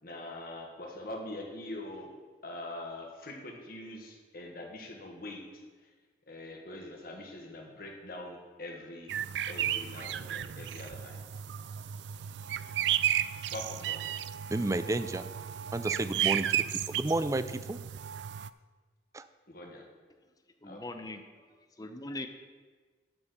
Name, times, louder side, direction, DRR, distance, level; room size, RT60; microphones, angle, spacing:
voice 1, 0.0-2.1 2.4-5.6 6.3-9.1 9.4-11.2 13.5-14.0 19.5-19.8 20.6-20.8, left 1 dB, 55° left, 1 dB, 1.7 m, -43 dB
sound 1, 9.1-18.5, right 10 dB, 85° right, 0.3 m, -33 dB
voice 2, 14.5-15.2 15.7-17.8 19.1-19.3, right 2 dB, 20° right, 12 dB, 0.4 m, -31 dB
voice 3, 20.6-21.2 21.5-22.3, left 2 dB, 20° left, 7 dB, 0.7 m, -41 dB
12.5 x 4.5 x 6.6 m, 1.4 s
head